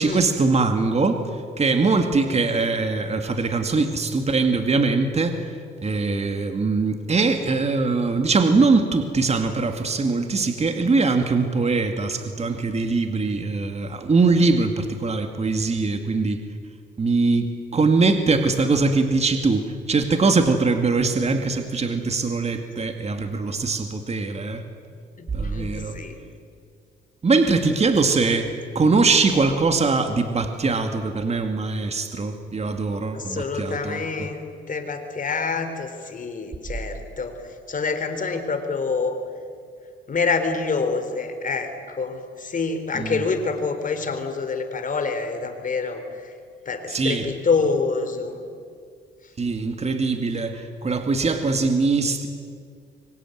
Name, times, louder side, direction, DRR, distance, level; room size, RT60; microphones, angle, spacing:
voice 1, 0.0-5.6 5.8-16.4 17.0-24.7 25.3-26.0 27.2-34.0 42.9-43.2 46.9-47.3 49.4-52.3, right 3 dB, 35° right, 6 dB, 2.4 m, -22 dB
voice 2, 25.2-26.2 33.1-37.4 37.7-39.2 40.1-46.3 46.7-48.4, left 4 dB, 40° left, 7 dB, 4.0 m, -27 dB
25.5 x 24.0 x 9.4 m, 2.1 s
cardioid pair, 90°, 20 cm